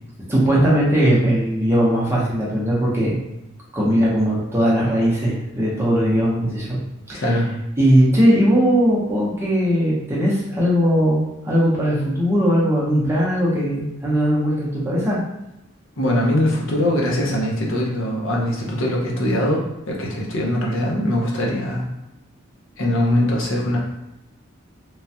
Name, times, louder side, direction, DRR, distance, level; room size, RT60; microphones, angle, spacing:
voice 1, 0.3-3.2 3.7-6.8 7.1-7.2 7.8-15.2, equal, 10° right, -6 dB, 0.6 m, -19 dB
voice 2, 7.1-7.5 16.0-21.8 22.8-23.8, left 1 dB, 65° left, -2 dB, 0.7 m, -21 dB
3.1 x 2.2 x 2.7 m, 0.91 s
head